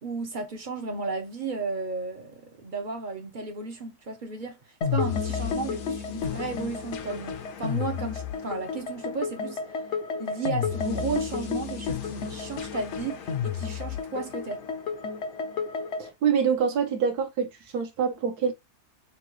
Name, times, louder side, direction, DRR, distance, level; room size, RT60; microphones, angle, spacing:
voice 1, 0.0-4.6 4.9-9.6 10.2-14.6, right 4 dB, 45° right, 0.6 m, -34 dB
sound 1, 4.8-16.1, left 6 dB, 60° left, 0.8 m, -31 dB
voice 2, 16.0-17.5 17.7-18.5, right 7 dB, 75° right, 1.4 m, -25 dB
5.8 x 2.3 x 3.0 m
omnidirectional pair, 1.7 m